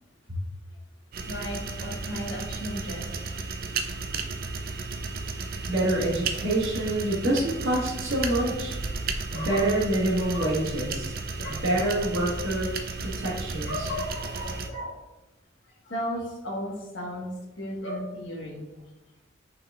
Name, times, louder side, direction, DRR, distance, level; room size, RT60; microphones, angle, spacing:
sound 1, 1.1-14.7, right 4 dB, 45° right, 0.4 m, -34 dB
voice 1, 1.3-3.4 9.3-9.8 10.3-10.5 11.4-11.9 13.6-15.0 15.8-17.3 17.6-18.6, left 1 dB, 75° left, -3 dB, 1.4 m, -35 dB
voice 2, 5.7-8.8 9.3-11.1 11.5-12.7 13.0-13.9, right 1 dB, 90° right, -4 dB, 1.5 m, -26 dB
5.8 x 3.8 x 2.4 m, 1.0 s
head